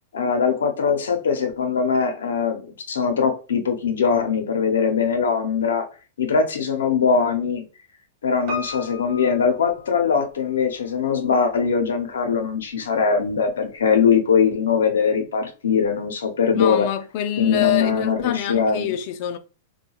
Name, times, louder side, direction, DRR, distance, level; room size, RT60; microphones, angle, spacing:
voice 1, 0.1-5.8 6.2-7.6 8.2-16.9 17.4-18.9, left 6 dB, 90° left, 0.7 m, -21 dB
Piano, 8.5-10.5 10.8-10.9, left 3 dB, 50° right, 0.9 m, -36 dB
voice 2, 16.5-19.4, left 11 dB, 50° left, 0.4 m, -25 dB
2.3 x 2.2 x 2.9 m
hypercardioid pair, 135°, 0 cm